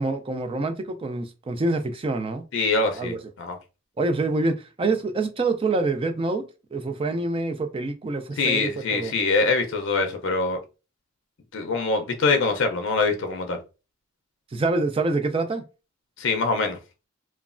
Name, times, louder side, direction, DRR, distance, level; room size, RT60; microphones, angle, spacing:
voice 1, 0.0-2.4 2.9-3.2 4.0-6.4 6.7-9.1 14.5-15.6, right 3 dB, 25° right, 0.3 m, -26 dB
voice 2, 2.5-3.6 8.4-10.6 11.5-13.6 16.2-16.8, left 3 dB, 60° left, 0.5 m, -24 dB
3.1 x 2.2 x 2.4 m
head